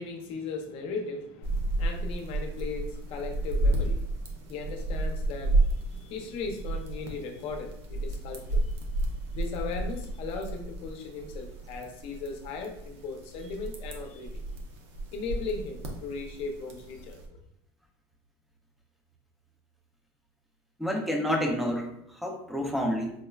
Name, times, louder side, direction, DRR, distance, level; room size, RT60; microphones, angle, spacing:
voice 1, 0.0-8.8 9.3-14.4 15.1-17.4, left 4 dB, 45° left, 3 dB, 0.6 m, -38 dB
sound 1, 1.4-17.2, right 2 dB, 85° right, 0.7 m, -32 dB
voice 2, 20.8-23.1, equal, ahead, 2 dB, 0.4 m, -29 dB
4.7 x 2.1 x 2.3 m, 0.77 s
supercardioid pair, 150°, 14 cm